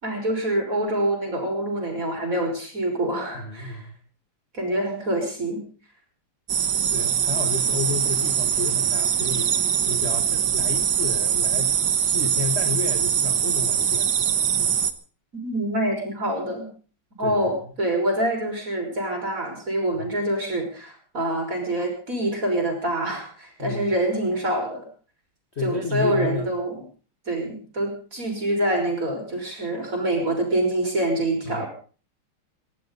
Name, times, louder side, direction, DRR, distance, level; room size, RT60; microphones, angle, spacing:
voice 1, 0.0-3.8 4.5-5.6 6.7-6.9 15.3-16.7 17.2-24.9 25.6-26.8 27.3-31.7, right 1 dB, 40° right, 2 dB, 6.0 m, -26 dB
voice 2, 3.3-3.9 6.9-14.1 14.6-14.8 17.2-17.5 19.9-20.0 23.6-23.9 25.5-26.5 31.4-31.7, left 5 dB, 35° left, 4 dB, 1.7 m, -32 dB
sound 1, 6.5-14.9, right 8 dB, 60° right, 1.6 m, -23 dB
20.5 x 17.5 x 4.0 m, 0.40 s
omnidirectional pair, 2.3 m